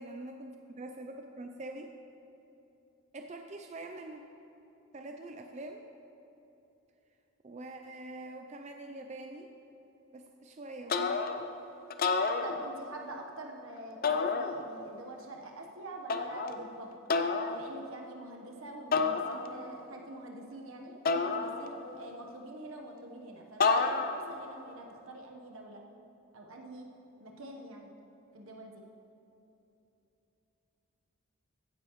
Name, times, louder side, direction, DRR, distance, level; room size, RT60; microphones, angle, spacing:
voice 1, 0.0-1.9 3.1-4.2 4.9-5.8 7.4-9.5 10.1-11.3, right 2 dB, 35° right, 4 dB, 0.4 m, -44 dB
sound 1, 10.9-11.5 11.9-13.0 14.0-14.9 16.1-16.6 17.1-17.6 18.9-19.8 21.1-22.0 23.6-24.4, left 4 dB, 45° left, 0.5 m, -30 dB
voice 2, 12.4-16.9 17.4-25.8 26.3-26.9 27.2-27.9 28.3-28.8, right 2 dB, 80° right, 1 dB, 1.2 m, -46 dB
15.5 x 9.5 x 3.1 m, 3.0 s
head